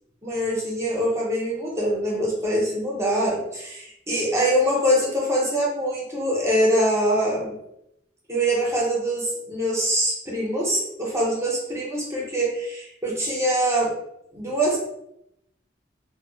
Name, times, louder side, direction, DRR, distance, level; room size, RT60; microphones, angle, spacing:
voice 1, 0.2-7.5 8.3-13.9 14.3-14.8, equal, 15° right, -3 dB, 0.6 m, -24 dB
2.2 x 2.0 x 3.7 m, 0.80 s
head